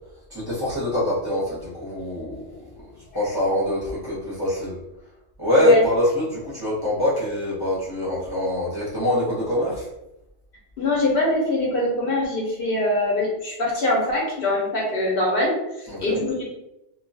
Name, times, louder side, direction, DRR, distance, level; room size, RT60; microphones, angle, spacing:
voice 1, 0.3-4.8 5.4-9.9 15.9-16.2, left 1 dB, 20° right, -8 dB, 0.8 m, -24 dB
voice 2, 10.8-16.4, left 1 dB, 55° left, -3 dB, 0.8 m, -23 dB
2.3 x 2.3 x 2.6 m, 0.88 s
omnidirectional pair, 1.3 m